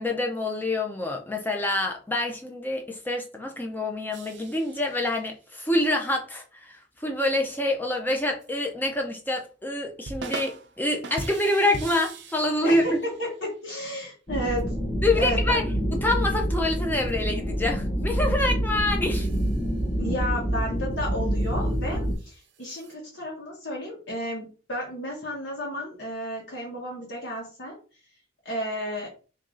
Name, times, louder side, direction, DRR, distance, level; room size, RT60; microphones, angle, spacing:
voice 1, 0.0-12.8 15.0-15.6 15.9-19.3, left 1 dB, 10° left, 0.5 m, -26 dB
sound 1, 4.1-5.5 6.1-6.2 8.4-8.5 10.0-10.8 11.0-13.5 14.6-14.7 17.1-17.2 19.0-19.9 20.9-22.9, right 3 dB, 60° right, 0.5 m, -41 dB
voice 2, 13.2-14.7 15.2-15.6 20.0-27.7 28.4-29.1, equal, 65° left, 1.1 m, -32 dB
sound 2, 14.3-22.2, equal, 25° left, 0.9 m, -27 dB
3.1 x 2.6 x 3.7 m
head